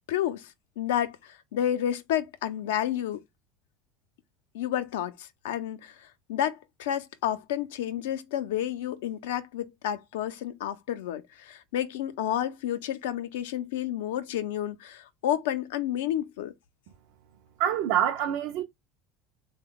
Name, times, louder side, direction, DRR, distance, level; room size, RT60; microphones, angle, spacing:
voice 1, 0.1-3.2 4.5-16.5, left 11 dB, 90° left, 0.5 m, -30 dB
voice 2, 17.6-18.6, right 10 dB, 70° right, 0.4 m, -26 dB
3.5 x 2.1 x 3.6 m
supercardioid pair, 105°, 0 cm